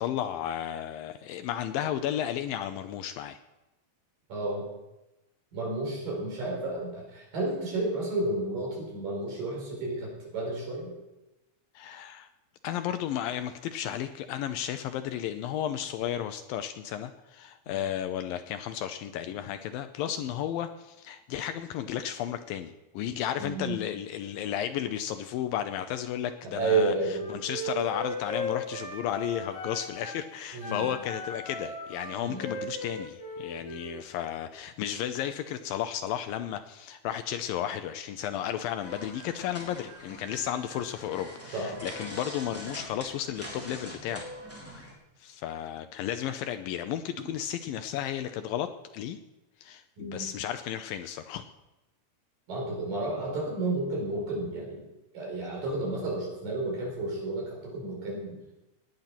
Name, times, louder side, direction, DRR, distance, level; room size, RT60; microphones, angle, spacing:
voice 1, 0.0-3.4 11.8-12.3 12.6-26.9 27.3-44.3 44.7-44.8 45.2-49.2 49.6-51.4, left 10 dB, 80° left, 9 dB, 2.2 m, -33 dB
voice 2, 4.3-4.7 5.5-10.9 17.7-17.8 23.4-23.7 26.5-27.3 30.5-30.9 32.2-32.5 41.5-41.7 50.0-50.3 52.5-54.8 55.1-58.3, right 2 dB, 60° right, -2 dB, 6.3 m, -31 dB
Wind instrument woodwind instrument, 27.1-30.2 30.6-34.0, left 1 dB, 55° left, 8.2 m, -37 dB
sound 1, 38.8-44.9, equal, 5° right, 3.6 m, -44 dB
18.5 x 8.9 x 5.8 m, 0.97 s
omnidirectional pair, 4.4 m